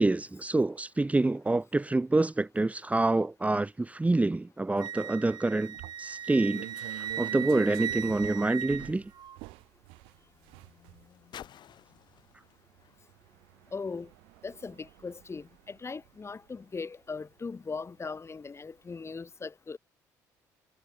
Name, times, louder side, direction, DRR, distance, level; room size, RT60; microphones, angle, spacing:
voice 1, 0.0-9.1, right 2 dB, 15° right, 1.7 m, -27 dB
Wind instrument woodwind instrument, 4.8-9.4, right 9 dB, 55° right, 4.4 m, -37 dB
sound 1, 5.7-18.4 18.8-19.0, right 25 dB, 80° right, 2.8 m, -49 dB
sound 2, 8.5-14.3 15.1-15.2, left 10 dB, 60° left, 7.5 m, -55 dB
voice 2, 13.7-14.1 14.4-19.8, left 4 dB, 30° left, 5.1 m, -39 dB
supercardioid pair, 70°, 9 cm